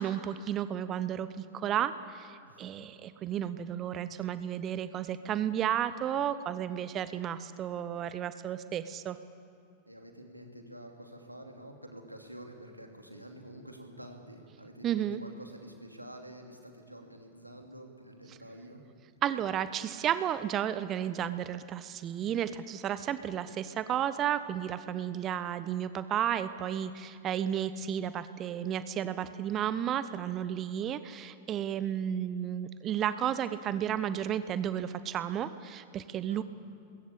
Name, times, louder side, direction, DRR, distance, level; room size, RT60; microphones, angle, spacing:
voice 1, 0.0-9.2 14.8-15.2 19.2-36.4, right 10 dB, 30° right, 13 dB, 0.9 m, -33 dB
voice 2, 9.8-18.8 36.3-36.4, right 1 dB, 90° right, 3 dB, 3.0 m, -48 dB
23.0 x 21.0 x 8.5 m, 2.4 s
figure-of-eight pair, 90°, 0 cm